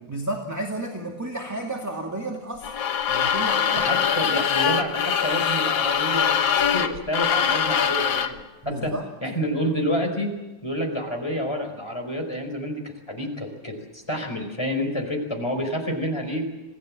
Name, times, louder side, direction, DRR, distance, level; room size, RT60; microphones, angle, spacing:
voice 1, 0.1-2.7 3.1-3.9 4.2-4.3 8.6-9.0, right 1 dB, 10° right, 1 dB, 2.3 m, -32 dB
sound 1, 2.6-8.4, left 8 dB, 90° left, 2.1 m, -23 dB
voice 2, 3.8-8.9 9.2-10.3 10.6-12.8 13.1-16.4, equal, 15° left, 3 dB, 5.0 m, -28 dB
27.0 x 18.5 x 7.7 m, 1.1 s
omnidirectional pair, 2.0 m